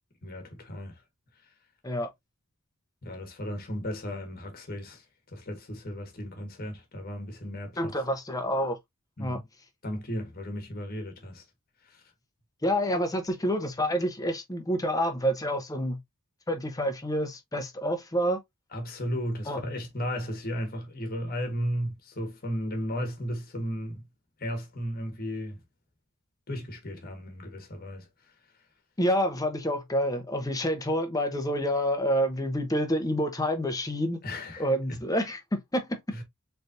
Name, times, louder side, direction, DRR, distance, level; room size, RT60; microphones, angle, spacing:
voice 1, 0.2-1.0 3.0-7.9 9.2-9.4 9.8-11.5 11.8-12.0 18.7-24.0 24.4-25.6 26.5-28.1 34.2-35.0 36.1-36.2, equal, 40° left, 1.3 m, -35 dB
voice 2, 7.8-8.8 9.2-9.4 12.6-16.0 16.5-18.4 19.5-19.6 29.0-34.2 34.6-36.0, equal, 15° left, 0.8 m, -28 dB
4.0 x 3.3 x 2.6 m
head